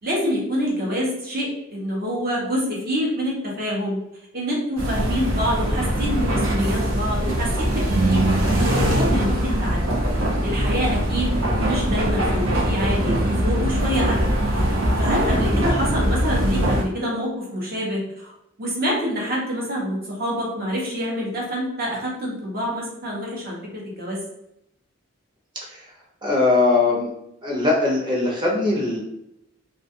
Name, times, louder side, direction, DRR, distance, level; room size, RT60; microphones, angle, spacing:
voice 1, 0.0-4.0 4.3-7.8 8.1-9.8 10.4-14.3 14.5-18.3 18.6-23.6 23.8-24.2, equal, 50° right, -3 dB, 0.9 m, -26 dB
sound 1, 4.8-16.8, right 1 dB, 85° right, 0.7 m, -22 dB
voice 2, 26.2-27.1 27.4-29.0, left 3 dB, 20° right, -3 dB, 0.7 m, -21 dB
2.4 x 2.4 x 2.6 m, 0.81 s
head